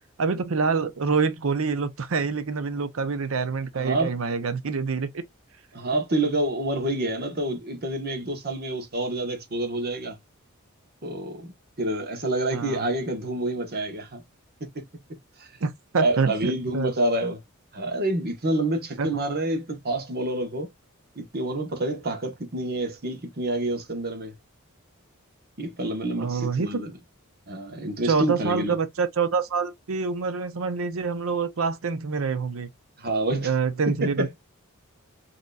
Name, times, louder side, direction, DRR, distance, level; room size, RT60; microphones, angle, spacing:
voice 1, 0.2-5.2 12.5-12.9 15.6-16.9 19.0-19.1 26.2-26.7 28.0-32.7 33.4-34.3, right 5 dB, 65° right, 0.6 m, -26 dB
voice 2, 3.7-4.1 5.7-10.2 11.0-11.5 11.8-14.2 14.7-14.8 15.4-15.5 16.0-17.4 17.7-20.7 21.1-24.3 25.6-26.9 27.5-28.7 33.0-33.5 34.0-34.3, right 1 dB, 45° right, 1.1 m, -28 dB
5.3 x 2.9 x 2.3 m
head